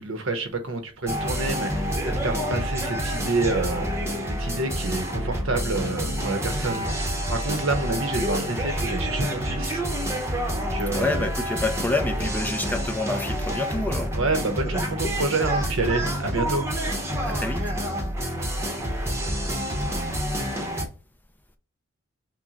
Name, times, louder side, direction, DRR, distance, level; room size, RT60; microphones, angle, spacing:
voice 1, 0.0-3.9 4.3-9.8 10.5-11.3 14.1-16.7, right 3 dB, 75° right, 0.9 m, -28 dB
sound 1, 1.1-20.8, equal, 15° right, 0.9 m, -28 dB
voice 2, 10.9-14.1 17.2-17.7, left 2 dB, 10° left, 0.5 m, -28 dB
6.0 x 2.2 x 3.9 m
head